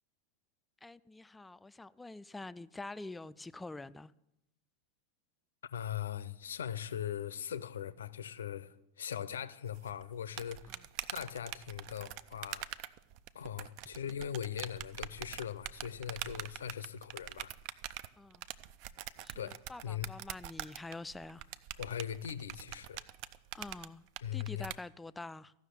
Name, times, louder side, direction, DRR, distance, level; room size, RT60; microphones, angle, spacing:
voice 1, 0.8-4.1 10.7-10.8 18.2-18.4 19.2-21.4 23.5-24.0 24.3-25.5, left 2 dB, 10° left, 0.4 m, -46 dB
voice 2, 5.7-10.7 11.1-12.7 13.3-17.5 19.4-20.1 21.8-23.0 24.2-24.7, left 9 dB, 65° left, 0.6 m, -40 dB
sound 1, 9.7-24.8, right 12 dB, 45° right, 0.5 m, -44 dB
14.5 x 6.4 x 9.2 m
figure-of-eight pair, 90°, 0 cm